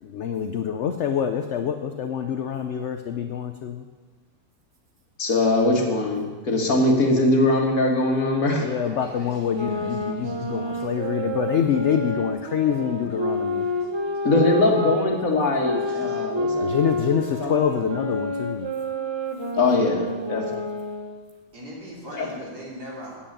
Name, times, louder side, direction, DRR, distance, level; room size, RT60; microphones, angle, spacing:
voice 1, 0.0-3.8 8.6-13.7 16.6-18.7, left 8 dB, 70° left, 7 dB, 0.6 m, -26 dB
voice 2, 5.2-8.7 14.2-16.7 17.4-17.6 19.6-20.4 22.1-22.3, left 2 dB, 55° left, 1 dB, 1.9 m, -21 dB
voice 3, 8.8-10.9 13.3-14.3 15.8-16.2 21.5-23.2, equal, 65° right, -5 dB, 3.7 m, -42 dB
sound 1, 9.4-15.0 15.6-21.2, left 1 dB, 20° right, 0.8 m, -29 dB
9.1 x 7.3 x 8.5 m, 1.3 s
omnidirectional pair, 1.8 m